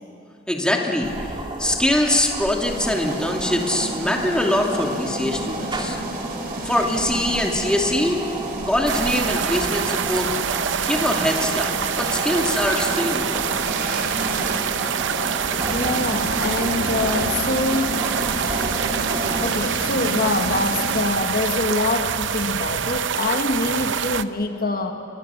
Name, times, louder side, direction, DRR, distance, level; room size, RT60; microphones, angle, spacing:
voice 1, 0.5-1.1 1.6-6.0 6.6-8.2 8.7-10.3 10.8-13.6, left 1 dB, 5° left, 0 dB, 2.5 m, -23 dB
sound 1, 1.0-19.5, right 2 dB, 25° right, 2.2 m, -33 dB
sound 2, 2.6-21.0, right 1 dB, 55° right, 3.5 m, -31 dB
sound 3, 8.9-24.2, right 8 dB, 70° right, 0.6 m, -26 dB
voice 2, 15.7-18.0 19.4-24.9, left 2 dB, 50° left, 4 dB, 1.4 m, -24 dB
28.5 x 23.0 x 7.1 m, 2.5 s
head